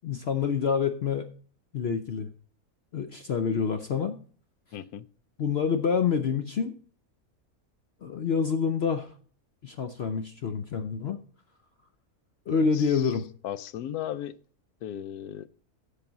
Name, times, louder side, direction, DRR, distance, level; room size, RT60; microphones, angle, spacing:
voice 1, 0.0-1.3 1.7-2.3 2.9-4.2 5.4-6.8 8.0-9.1 9.6-11.2 12.5-13.2, left 6 dB, 55° left, 0.8 m, -27 dB
voice 2, 4.7-5.1 12.7-13.1 13.4-14.4 14.8-15.5, left 11 dB, 85° left, 1.1 m, -36 dB
10.5 x 6.9 x 3.9 m
omnidirectional pair, 1.6 m